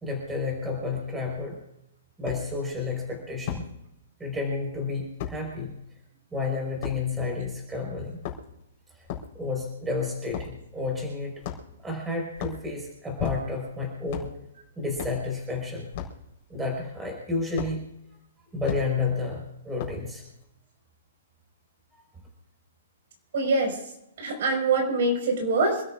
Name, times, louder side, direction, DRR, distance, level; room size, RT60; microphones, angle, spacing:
voice 1, 0.0-1.6 2.2-3.7 4.2-5.7 6.3-8.2 9.3-11.3 11.8-14.3 14.8-15.9 16.5-17.8 18.5-20.2, left 3 dB, 10° right, 0 dB, 4.7 m, -31 dB
sound 1, 2.3-2.4 3.5-3.7 5.2-5.4 6.8-7.0 8.1-8.6 9.1-9.3 10.3-10.6 11.4-11.8 12.3-12.6 13.2-13.7 14.1-14.3 15.0-15.2 15.9-16.2 17.6-17.7 18.6-18.8 19.8-20.1, left 9 dB, 35° left, 4.3 m, -34 dB
voice 2, 23.3-23.7 24.2-25.8, right 3 dB, 55° right, 2 dB, 5.3 m, -24 dB
27.5 x 13.0 x 2.5 m, 0.84 s
hypercardioid pair, 165°, 0 cm